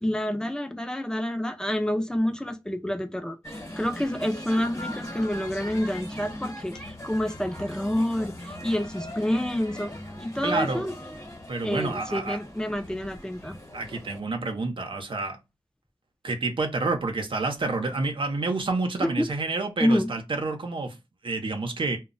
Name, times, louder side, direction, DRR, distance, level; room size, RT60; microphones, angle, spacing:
voice 1, 0.0-9.9 10.2-10.9 11.6-13.6 19.0-19.3 19.8-20.1, equal, 10° left, 0.5 m, -28 dB
sound 1, 3.4-14.2, left 1 dB, 35° left, 1.0 m, -40 dB
voice 2, 10.4-10.8 11.5-12.4 13.7-15.4 16.2-21.0 21.2-22.0, right 3 dB, 85° right, 0.6 m, -29 dB
2.2 x 2.0 x 3.7 m
wide cardioid pair, 60°, 8 cm